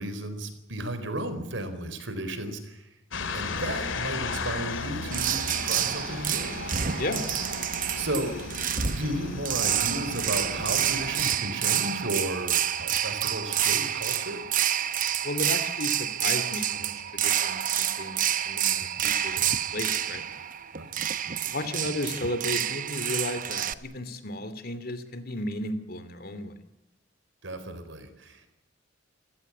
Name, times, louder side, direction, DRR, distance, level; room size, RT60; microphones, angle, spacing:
voice 1, 0.0-2.9 3.3-6.6 7.9-8.4 8.9-14.4 20.7-20.9 27.4-28.5, right 1 dB, 75° right, 10 dB, 4.2 m, -34 dB
sound 1, 3.1-11.2, left 4 dB, 85° left, 2.6 m, -35 dB
sound 2, 5.1-23.7, right 10 dB, 45° right, 0.9 m, -28 dB
voice 2, 15.2-20.2 21.4-26.6, left 1 dB, 50° left, 11 dB, 2.7 m, -34 dB
28.5 x 16.5 x 8.6 m, 0.89 s
head